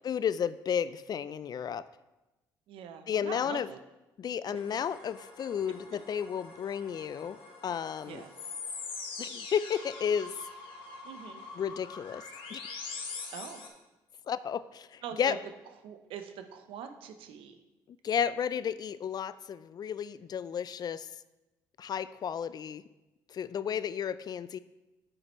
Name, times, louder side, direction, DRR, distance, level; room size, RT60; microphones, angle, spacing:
voice 1, 0.0-1.8 3.1-3.7 4.2-8.2 9.2-10.3 11.6-12.2 12.5-12.6 14.3-15.4 18.0-21.1 21.8-22.8 23.3-24.6, left 8 dB, 45° left, 16 dB, 0.3 m, -33 dB
voice 2, 2.7-3.8 4.5-4.6 8.1-8.3 11.0-11.4 13.3-13.7 15.0-15.4 15.8-17.6, right 8 dB, 70° right, 8 dB, 0.7 m, -43 dB
sound 1, 4.6-13.7, left 4 dB, 70° left, 1.4 m, -44 dB
8.9 x 6.2 x 3.1 m, 1.0 s
hypercardioid pair, 60°, 9 cm